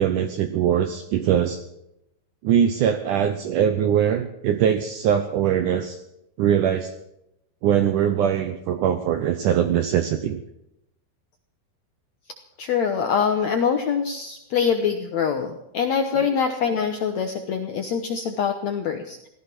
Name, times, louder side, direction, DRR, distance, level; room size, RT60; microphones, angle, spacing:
voice 1, 0.0-1.6 2.4-6.0 6.4-6.9 7.6-10.4, right 9 dB, 75° right, 9 dB, 1.9 m, -22 dB
voice 2, 12.6-19.3, left 6 dB, 70° left, 5 dB, 1.7 m, -24 dB
17.0 x 14.0 x 6.1 m, 0.83 s
omnidirectional pair, 4.6 m